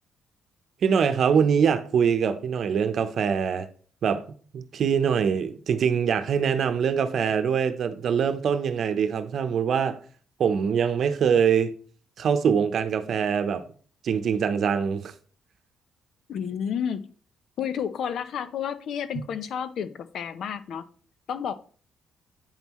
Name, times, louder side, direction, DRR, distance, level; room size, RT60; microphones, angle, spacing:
voice 1, 0.8-3.7 4.0-4.2 4.5-10.0 10.4-11.7 12.2-13.6 14.0-15.1, right 7 dB, 60° right, 0.8 m, -23 dB
voice 2, 16.3-17.1 17.6-20.9 21.3-21.5, left 8 dB, 70° left, 0.6 m, -31 dB
8.9 x 5.5 x 3.1 m
cardioid pair, 90°, 0 cm